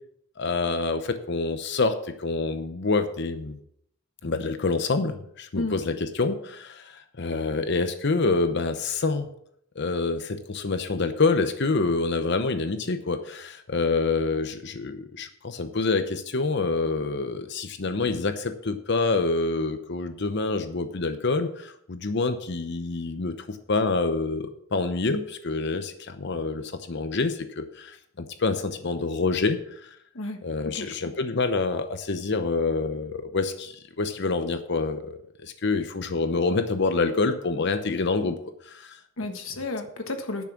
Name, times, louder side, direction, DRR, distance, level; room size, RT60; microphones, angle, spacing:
voice 1, 0.4-3.6 4.2-9.3 9.8-29.9 30.4-38.4 38.7-39.0, left 3 dB, 60° left, 9 dB, 0.8 m, -27 dB
voice 2, 30.1-30.9 39.2-40.4, left 2 dB, 85° left, 6 dB, 1.5 m, -32 dB
10.5 x 6.3 x 5.9 m, 0.71 s
head